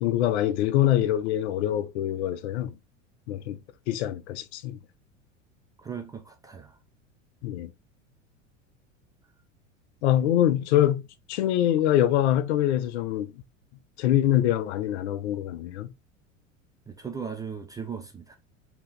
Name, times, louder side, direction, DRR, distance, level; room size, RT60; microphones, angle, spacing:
voice 1, 0.0-2.7 3.3-3.6 3.9-4.8 7.4-7.7 10.0-13.3 14.0-15.9, left 12 dB, 60° left, 0.6 m, -24 dB
voice 2, 5.8-6.8 16.9-18.3, right 6 dB, 10° right, 0.3 m, -37 dB
3.5 x 2.9 x 3.1 m
figure-of-eight pair, 80°, 38 cm